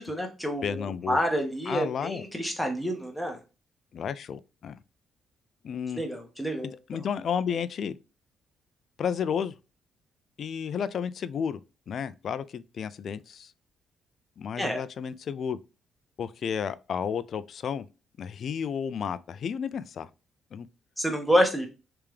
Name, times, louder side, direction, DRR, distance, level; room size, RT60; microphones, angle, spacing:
voice 1, 0.0-3.4 5.9-6.7 14.6-14.8 21.0-21.7, equal, ahead, 1.3 m, -28 dB
voice 2, 0.6-1.2 1.7-2.2 3.9-4.8 5.6-6.0 6.9-8.0 9.0-9.5 10.4-11.6 11.9-13.5 14.4-15.6 16.2-17.9 18.2-20.1 20.5-20.7, left 7 dB, 60° left, 0.3 m, -32 dB
3.4 x 3.4 x 3.2 m
cardioid pair, 90°, 0 cm